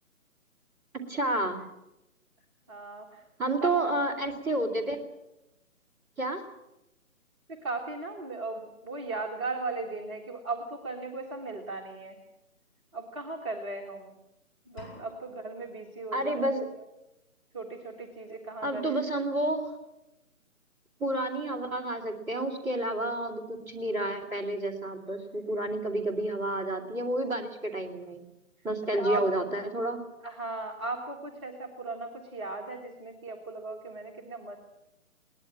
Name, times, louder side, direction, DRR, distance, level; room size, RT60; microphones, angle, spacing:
voice 1, 0.9-1.6 3.4-5.0 6.2-6.4 16.1-16.7 18.6-19.7 21.0-28.2 28.6-30.0, right 1 dB, 5° right, -6 dB, 2.2 m, -30 dB
voice 2, 2.7-3.7 7.6-12.2 12.9-14.1 14.7-16.6 17.5-19.0 28.9-29.3 30.2-34.6, right 3 dB, 20° right, -2 dB, 1.7 m, -37 dB
sound 1, 14.8-15.8, left 2 dB, 45° left, 6.3 m, -49 dB
21.5 x 19.0 x 7.5 m, 0.92 s
figure-of-eight pair, 145°, 43 cm